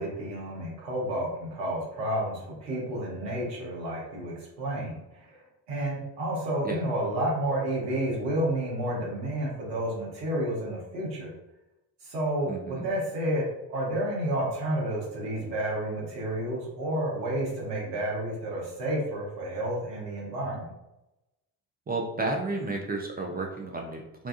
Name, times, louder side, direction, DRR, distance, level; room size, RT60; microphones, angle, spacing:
voice 1, 0.0-5.4 5.7-11.3 12.0-13.4 13.7-20.7, right 1 dB, 80° right, -3 dB, 0.9 m, -30 dB
voice 2, 12.5-12.9 21.9-24.3, right 2 dB, 20° right, 0 dB, 0.3 m, -32 dB
2.6 x 2.2 x 2.4 m, 0.93 s
figure-of-eight pair, 40°, 49 cm